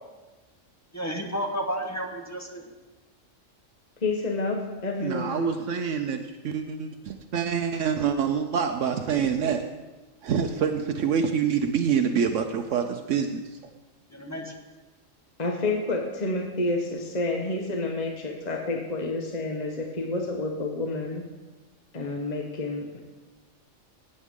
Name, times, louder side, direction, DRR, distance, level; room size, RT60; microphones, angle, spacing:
voice 1, 0.9-2.7 14.1-14.5, equal, 15° left, 1 dB, 1.3 m, -32 dB
voice 2, 4.0-5.6 15.4-21.2 21.9-23.0, left 2 dB, 35° left, 1 dB, 1.2 m, -29 dB
voice 3, 5.0-9.6 10.2-13.4, right 7 dB, 70° right, 6 dB, 1.0 m, -26 dB
17.5 x 8.8 x 3.7 m, 1.2 s
omnidirectional pair, 1.4 m